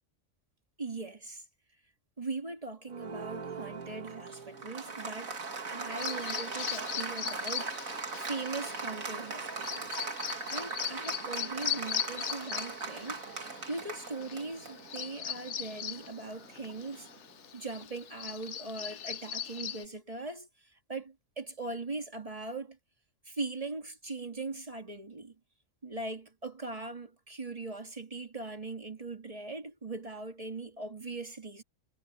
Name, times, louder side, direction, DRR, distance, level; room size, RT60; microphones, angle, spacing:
voice 1, 0.8-1.4 2.2-5.4 5.7-9.9 10.5-13.2 13.7-17.1 17.5-20.5 20.9-22.8 23.3-25.3 25.8-31.6, right 3 dB, 25° right, 1.8 m, -40 dB
Applause, 2.9-17.3, right 4 dB, 85° right, 2.6 m, -40 dB
Bird vocalization bird call bird song, 5.9-19.8, left 9 dB, 60° left, 1.1 m, -39 dB
omnidirectional pair, 1.4 m